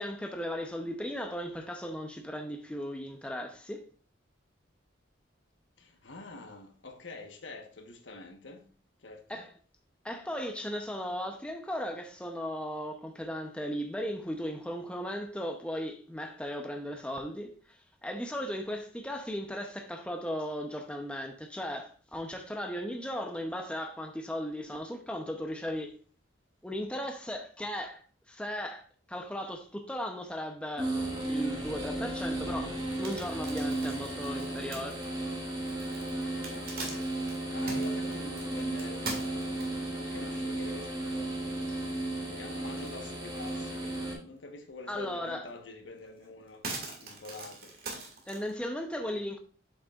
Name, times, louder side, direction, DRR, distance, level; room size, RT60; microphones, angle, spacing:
voice 1, 0.0-3.8 9.3-9.5 10.0-25.9 26.6-30.9 31.2-35.0 36.2-36.3 44.9-45.5 48.3-49.4, equal, 5° left, 0.6 m, -37 dB
voice 2, 5.8-8.7 9.0-9.4 36.4-46.7 47.0-47.8, left 3 dB, 70° left, 1.2 m, -47 dB
sound 1, 30.8-44.1, right 1 dB, 20° right, 1.6 m, -34 dB
sound 2, 32.8-40.0 40.5-40.6 41.1-41.2 41.5-42.3 42.7-43.6 44.0-44.1 45.5-45.6 46.0-48.5, right 3 dB, 50° right, 2.0 m, -42 dB
7.9 x 7.3 x 2.4 m
head